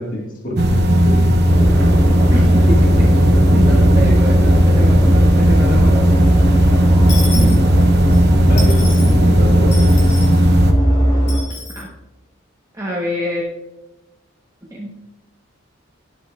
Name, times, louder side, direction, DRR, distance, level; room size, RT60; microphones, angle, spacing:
voice 1, 0.0-1.4 7.3-7.7 8.4-9.9, equal, 40° left, -2 dB, 1.6 m, -25 dB
sound 1, 0.6-10.7, equal, 50° right, 0.8 m, -14 dB
sound 2, 1.4-11.4, right 1 dB, 20° left, 2.7 m, -19 dB
voice 2, 2.3-3.1 3.5-6.1 11.7-11.9 12.7-13.5 14.7-14.9, equal, 15° right, -4 dB, 0.9 m, -26 dB
Dishes pots and pans / Coin (dropping), 7.1-8.2 8.6-9.2 9.7-10.4 11.3-11.8, left 2 dB, 55° left, 3.2 m, -31 dB
11.0 x 7.9 x 2.3 m, 1.0 s
head